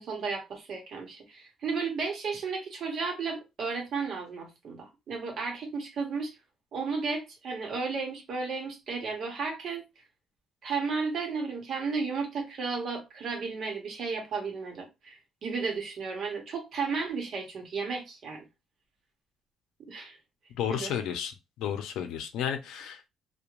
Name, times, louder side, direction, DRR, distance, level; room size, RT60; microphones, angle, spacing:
voice 1, 0.0-6.3 6.7-9.8 10.6-18.5 19.9-20.2 20.7-20.9, right 4 dB, 45° right, 0.9 m, -33 dB
voice 2, 20.6-21.3 21.6-23.1, left 9 dB, 90° left, 0.5 m, -32 dB
2.5 x 2.2 x 3.0 m
cardioid pair, 180°, 0 cm